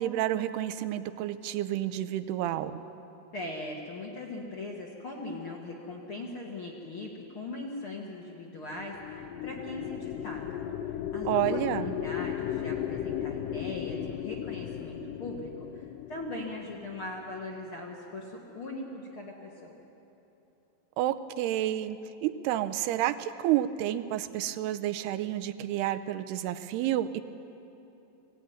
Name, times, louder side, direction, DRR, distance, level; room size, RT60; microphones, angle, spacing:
voice 1, 0.0-2.8 11.3-11.9 21.0-27.2, right 13 dB, 85° right, 10 dB, 2.7 m, -30 dB
voice 2, 3.3-10.6 11.1-19.8, left 2 dB, 50° left, -1 dB, 1.7 m, -40 dB
sound 1, 8.8-17.3, left 10 dB, 90° left, 1.9 m, -36 dB
20.0 x 16.5 x 9.4 m, 2.9 s
omnidirectional pair, 4.6 m